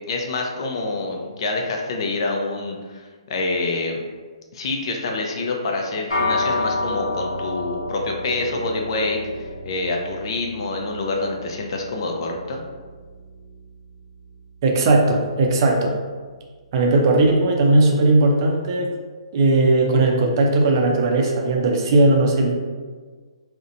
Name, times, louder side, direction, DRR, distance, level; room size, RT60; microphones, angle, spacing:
voice 1, 0.1-4.0 4.5-12.6, left 3 dB, 50° left, 1 dB, 0.4 m, -26 dB
sound 1, 6.1-15.6, left 2 dB, 90° left, 0.7 m, -31 dB
voice 2, 14.6-15.9 16.7-18.9 19.3-22.5, right 2 dB, 45° right, 1 dB, 0.4 m, -17 dB
2.6 x 2.1 x 2.5 m, 1.5 s
hypercardioid pair, 140°, 3 cm